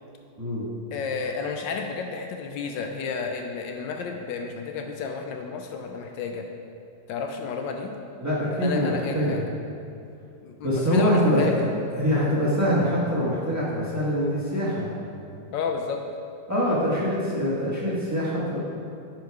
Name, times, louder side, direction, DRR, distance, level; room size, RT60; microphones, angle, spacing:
voice 1, 0.9-6.4 7.1-7.9 8.6-9.4 10.4-11.7 15.5-16.0, left 5 dB, 75° left, 4 dB, 1.3 m, -31 dB
voice 2, 8.2-9.4 10.6-11.6 11.9-14.9 16.5-18.6, equal, 10° right, -7 dB, 1.3 m, -24 dB
9.3 x 4.7 x 4.8 m, 2.5 s
omnidirectional pair, 2.1 m